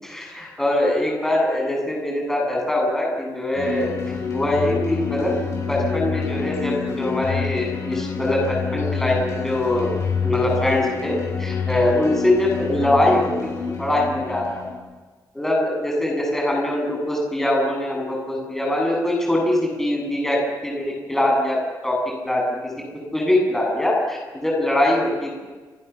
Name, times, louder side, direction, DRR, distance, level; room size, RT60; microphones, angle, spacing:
voice 1, 0.0-3.9 4.3-5.3 5.7-9.9 10.2-13.3 13.8-14.6 15.3-21.6 21.8-22.0 22.2-22.4 23.1-25.4, left 1 dB, 5° left, -1 dB, 7.9 m, -22 dB
sound 1, 3.6-14.7, left 6 dB, 40° left, 7.6 m, -27 dB
30.0 x 27.5 x 7.2 m, 1.4 s
wide cardioid pair, 180°, 7 cm